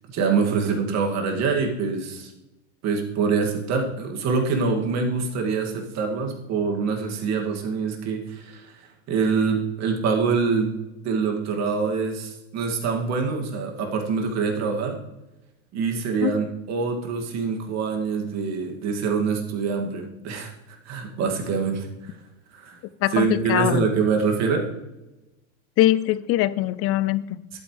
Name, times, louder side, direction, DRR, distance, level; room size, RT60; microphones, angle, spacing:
voice 1, 0.1-2.3 2.8-8.8 9.1-10.8 11.0-15.0 15.7-22.1 22.5-22.8 23.1-24.7 27.5-27.6, right 5 dB, 45° right, 2 dB, 2.3 m, -25 dB
voice 2, 23.0-23.9 25.8-27.4, left 14 dB, 40° left, 18 dB, 0.5 m, -22 dB
11.5 x 9.1 x 3.3 m, 1.0 s
supercardioid pair, 105°, 36 cm